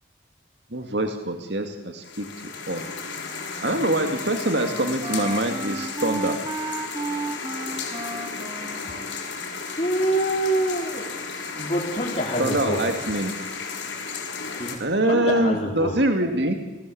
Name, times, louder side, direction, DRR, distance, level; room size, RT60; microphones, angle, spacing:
voice 1, 0.7-2.3 2.7-2.9 3.6-6.4 12.4-13.3 14.8-16.5, right 1 dB, 65° right, 5 dB, 2.4 m, -24 dB
sound 1, 2.0-14.8, left 5 dB, 85° left, 6.0 m, -34 dB
Wind instrument woodwind instrument, 3.0-10.2, right 3 dB, 25° right, 2.3 m, -34 dB
voice 2, 9.8-11.1 11.5-12.9 14.6-14.8 15.0-16.0, right 1 dB, 35° left, -3 dB, 3.7 m, -25 dB
29.5 x 19.5 x 8.7 m, 1.1 s
head